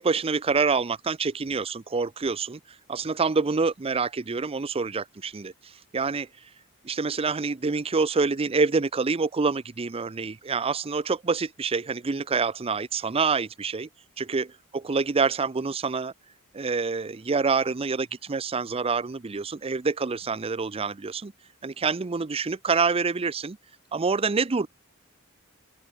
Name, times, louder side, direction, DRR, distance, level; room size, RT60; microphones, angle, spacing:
voice 1, 0.0-2.6 2.9-6.3 6.8-13.9 14.2-14.5 14.7-16.1 16.5-21.3 21.6-23.6 23.9-24.7, right 4 dB, 25° right, 0.5 m, -26 dB
open air
head